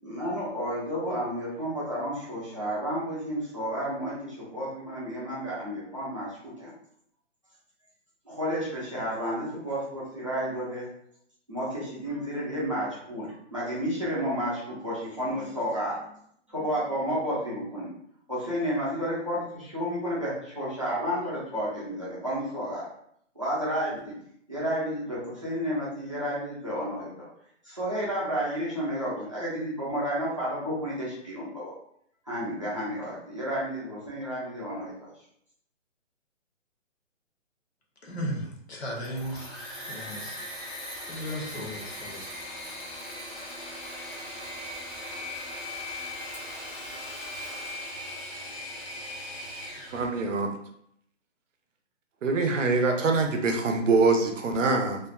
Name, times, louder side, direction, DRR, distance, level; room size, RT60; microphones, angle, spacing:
voice 1, 0.0-6.7 8.3-10.9 11.5-16.1 16.5-17.9 18.3-22.8 23.3-24.1 24.5-27.3 27.6-31.7 32.3-35.1, equal, 25° right, -8 dB, 0.5 m, -31 dB
voice 2, 38.0-39.6 39.9-40.5 41.1-42.3, equal, 55° left, -1 dB, 0.8 m, -36 dB
Engine / Mechanisms, 38.9-50.1, left 1 dB, 25° left, 0.6 m, -39 dB
voice 3, 49.9-50.5 52.2-55.0, right 3 dB, 75° right, 4 dB, 0.6 m, -24 dB
2.5 x 2.2 x 2.2 m, 0.69 s
hypercardioid pair, 180°, 38 cm